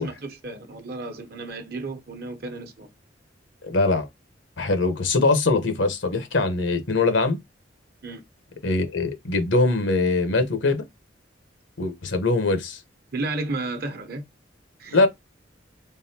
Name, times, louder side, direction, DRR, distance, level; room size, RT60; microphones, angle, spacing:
voice 1, 0.0-2.9 8.0-8.2 13.1-14.2 14.8-15.0, right 2 dB, 55° right, 0.9 m, -33 dB
voice 2, 3.6-4.1 4.6-7.4 8.6-10.8 11.8-12.8 14.9-15.1, left 3 dB, 85° left, 1.0 m, -22 dB
3.9 x 3.6 x 2.8 m
head